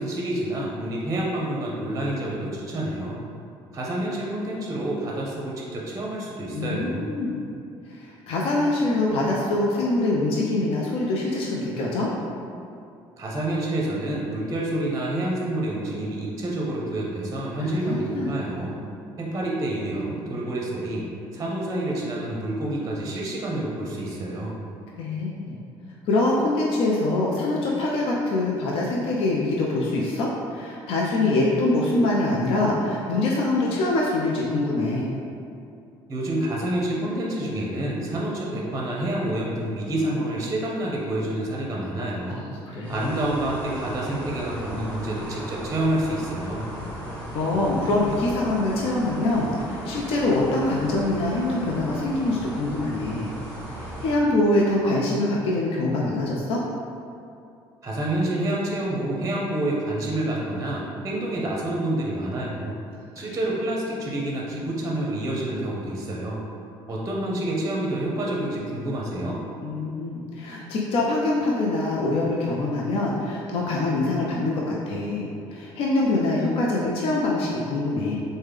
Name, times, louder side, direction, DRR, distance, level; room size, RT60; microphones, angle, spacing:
voice 1, 0.0-3.2 3.7-7.1 13.2-18.7 19.2-24.5 36.1-42.4 42.9-46.6 57.8-62.8 63.2-66.4 66.9-69.4, right 1 dB, 30° right, -3 dB, 0.6 m, -28 dB
voice 2, 6.5-7.4 7.9-12.1 17.6-18.3 25.0-25.6 26.1-35.1 42.3-43.0 47.3-53.3 53.8-56.6 63.2-63.4 69.6-75.3 75.5-78.2, left 2 dB, 65° left, -3 dB, 0.4 m, -24 dB
sound 1, 42.8-54.1, equal, 15° left, 1.1 m, -36 dB
3.2 x 2.1 x 3.3 m, 2.5 s
supercardioid pair, 80°, 10 cm